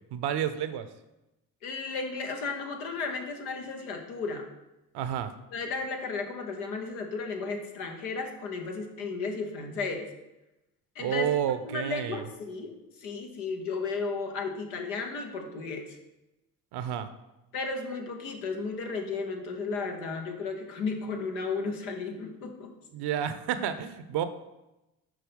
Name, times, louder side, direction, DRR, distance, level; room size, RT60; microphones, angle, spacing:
voice 1, 0.1-0.9 4.9-5.3 11.0-12.2 16.7-17.1 22.9-24.3, right 9 dB, 65° right, 11 dB, 0.7 m, -30 dB
voice 2, 1.6-4.5 5.5-10.1 10.9-11.3 11.6-12.7 13.0-15.8 17.5-22.7, left 4 dB, 90° left, 3 dB, 1.1 m, -34 dB
6.3 x 4.4 x 5.2 m, 0.97 s
hypercardioid pair, 55°, 43 cm